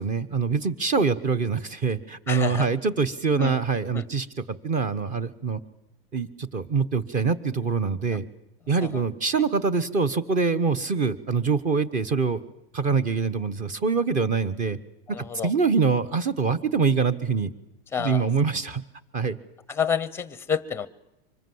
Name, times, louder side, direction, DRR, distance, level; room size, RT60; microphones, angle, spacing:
voice 1, 0.0-5.6 6.1-8.2 8.7-12.4 12.7-14.8 15.4-17.5 18.0-18.8 19.1-19.4, right 5 dB, 25° right, 16 dB, 1.2 m, -24 dB
voice 2, 2.3-2.7 3.3-3.6 3.9-4.0 8.8-9.0 15.1-15.5 17.9-18.2 19.7-20.9, left 7 dB, 10° left, 17 dB, 0.8 m, -29 dB
25.0 x 20.5 x 8.0 m, 0.88 s
supercardioid pair, 160°, 31 cm